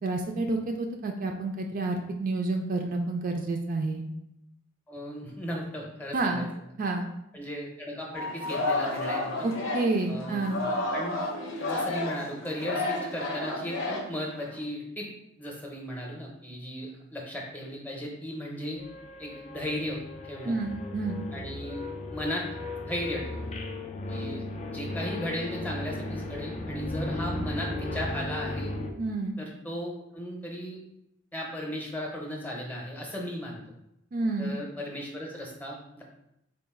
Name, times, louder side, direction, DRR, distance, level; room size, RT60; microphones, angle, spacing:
voice 1, 0.0-4.0 6.1-6.5 6.8-7.1 9.4-10.7 20.4-21.2 29.0-29.3 34.1-34.6, right 2 dB, 45° right, 3 dB, 0.3 m, -29 dB
voice 2, 4.9-6.5 7.3-9.5 10.1-11.2 11.6-15.1 15.4-18.8 19.2-20.5 21.3-21.8 22.1-22.4 22.9-23.5 24.1-24.4 24.7-28.7 29.4-30.8 31.3-33.6 34.4-36.0, equal, 10° left, -1 dB, 0.7 m, -36 dB
Singing, 8.1-14.6, left 2 dB, 70° left, 0.7 m, -31 dB
sound 1, 18.8-28.9, left 2 dB, 35° left, 0.4 m, -36 dB
3.9 x 2.5 x 3.6 m, 0.81 s
head